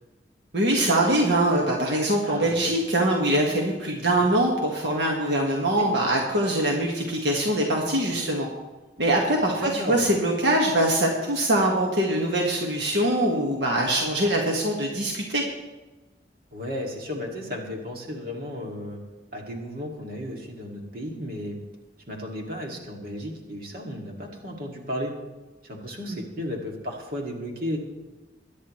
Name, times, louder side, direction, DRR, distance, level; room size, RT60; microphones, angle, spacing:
voice 1, 0.5-8.5 9.0-15.4 26.1-26.2, right 1 dB, 75° right, -1 dB, 1.8 m, -23 dB
voice 2, 2.3-2.7 4.2-4.3 5.8-5.9 9.6-10.1 16.5-19.0 19.3-21.6 22.1-25.1 25.6-27.8, left 1 dB, 55° right, 0 dB, 2.5 m, -34 dB
22.5 x 10.0 x 3.2 m, 1.1 s
head